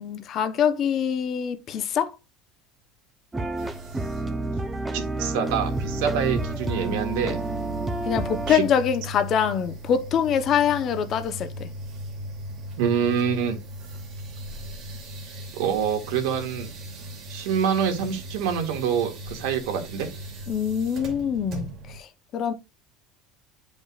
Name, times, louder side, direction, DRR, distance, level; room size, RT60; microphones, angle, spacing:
voice 1, 0.0-2.1 8.0-11.7 20.5-22.1 22.3-22.5, left 8 dB, 35° left, 0.8 m, -24 dB
sound 1, 3.3-8.6, right 2 dB, 10° right, 0.7 m, -30 dB
sound 2, 3.6-22.0, right 1 dB, 40° right, 2.7 m, -38 dB
voice 2, 4.9-7.4 8.5-8.7 12.8-13.6 15.5-16.7 17.3-20.1, right 7 dB, 80° right, 2.0 m, -26 dB
11.0 x 5.3 x 2.4 m
cardioid pair, 160°, 0 cm